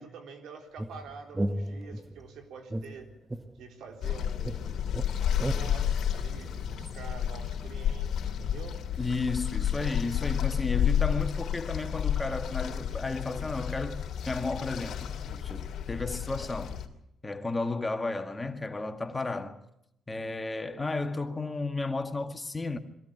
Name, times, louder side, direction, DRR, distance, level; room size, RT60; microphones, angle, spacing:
voice 1, 0.0-3.1 3.6-8.8, right 5 dB, 80° right, 4.0 m, -47 dB
sound 1, 0.8-2.2 2.7-4.1 4.4-7.0, right 1 dB, 20° right, 1.0 m, -36 dB
sound 2, 4.0-16.9, left 9 dB, 70° left, 2.8 m, -31 dB
voice 2, 9.0-16.8 17.2-19.6 20.1-22.8, left 3 dB, 20° left, 1.9 m, -33 dB
22.5 x 15.5 x 9.1 m
cardioid pair, 90°, 0 cm